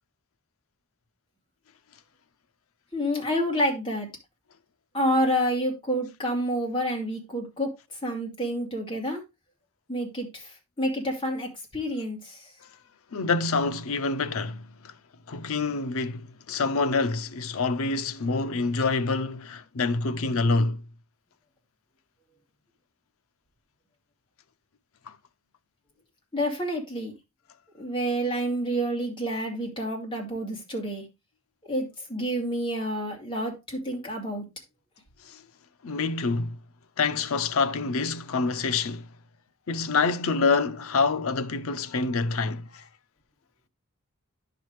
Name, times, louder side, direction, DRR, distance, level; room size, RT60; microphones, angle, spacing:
voice 1, 2.9-4.1 4.9-9.2 9.9-12.5 26.3-27.1 27.8-31.1 31.7-34.5, equal, 20° left, 2.2 m, -29 dB
voice 2, 13.1-14.9 15.3-20.8 25.1-25.2 35.2-35.4 35.8-36.6 37.0-39.1 39.7-42.9, left 4 dB, 70° left, 0.6 m, -26 dB
10.5 x 6.0 x 3.1 m
head